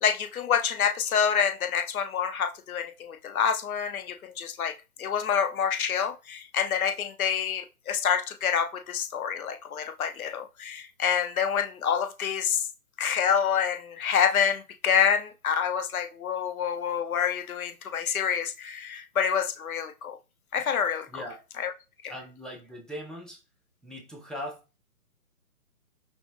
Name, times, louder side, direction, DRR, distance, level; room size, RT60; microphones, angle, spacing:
voice 1, 0.0-12.7 13.0-20.2 20.5-21.2 21.6-21.7 22.0-22.1, left 7 dB, 65° left, 0.5 m, -27 dB
voice 2, 21.1-21.4 22.1-23.4 23.8-24.8, equal, ahead, 0.3 m, -40 dB
3.5 x 2.0 x 2.5 m
hypercardioid pair, 170°, 46 cm